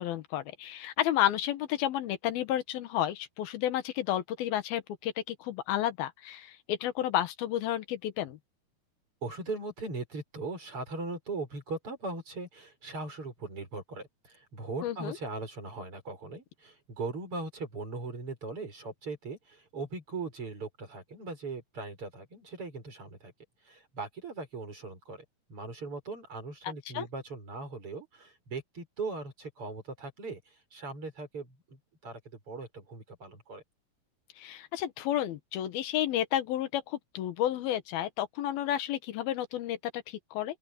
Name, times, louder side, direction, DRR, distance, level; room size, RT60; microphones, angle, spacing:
voice 1, 0.0-8.4 14.8-15.2 26.9-27.1 34.4-40.6, left 12 dB, 85° left, 3.2 m, -31 dB
voice 2, 9.2-23.3 23.6-32.2 32.5-33.6, right 3 dB, 35° right, 6.8 m, -39 dB
open air
omnidirectional pair, 4.2 m